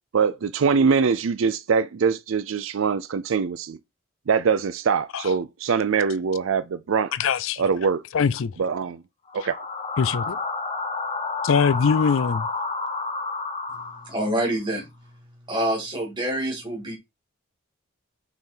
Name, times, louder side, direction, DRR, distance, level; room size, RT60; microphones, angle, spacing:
voice 1, 0.1-3.8 4.3-7.1 7.6-8.0 8.6-9.0 9.3-9.6, right 5 dB, 65° right, 0.4 m, -23 dB
voice 2, 7.1-7.6 8.1-8.5 10.0-10.4 11.4-12.5, left 6 dB, 60° left, 0.4 m, -22 dB
sound 1, 9.3-14.4, left 4 dB, 25° left, 1.1 m, -30 dB
voice 3, 14.0-14.9 15.5-17.0, right 1 dB, 20° right, 2.3 m, -26 dB
5.9 x 3.9 x 4.4 m
head